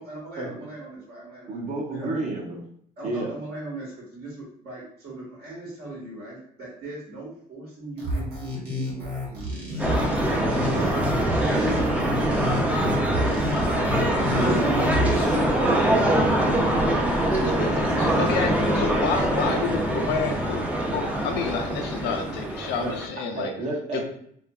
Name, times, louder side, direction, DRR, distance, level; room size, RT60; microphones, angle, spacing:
voice 1, 0.0-1.6 1.9-2.1 3.0-9.9 10.4-13.1 14.8-16.6 19.2-19.4, right 2 dB, 65° right, -6 dB, 1.1 m, -39 dB
voice 2, 1.5-2.6 3.0-3.3 10.7-10.9 14.3-15.0 22.8-23.0 23.3-24.0, right 2 dB, 45° right, 0 dB, 0.7 m, -30 dB
sound 1, 8.0-15.4, equal, 90° right, 0.9 m, -30 dB
sound 2, 9.8-23.1, right 1 dB, 10° right, 0.4 m, -23 dB
voice 3, 17.3-20.6 20.9-23.5 23.9-24.0, left 5 dB, 80° left, 4 dB, 0.5 m, -29 dB
2.7 x 2.4 x 2.3 m, 0.66 s
cardioid pair, 110°, 17 cm